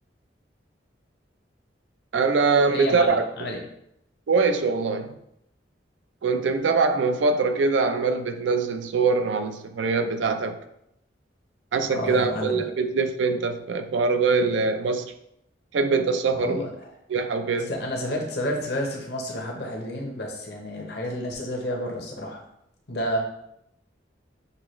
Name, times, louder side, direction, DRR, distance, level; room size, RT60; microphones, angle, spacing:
voice 1, 2.1-3.2 4.3-5.2 6.2-10.6 11.7-15.1 15.7-16.6 17.1-17.7, right 4 dB, 85° right, 8 dB, 0.4 m, -23 dB
voice 2, 2.7-3.6 11.8-12.6 16.3-16.7 17.7-22.4 22.9-23.2, equal, 60° left, 0 dB, 0.9 m, -30 dB
6.5 x 2.3 x 3.1 m, 0.77 s
head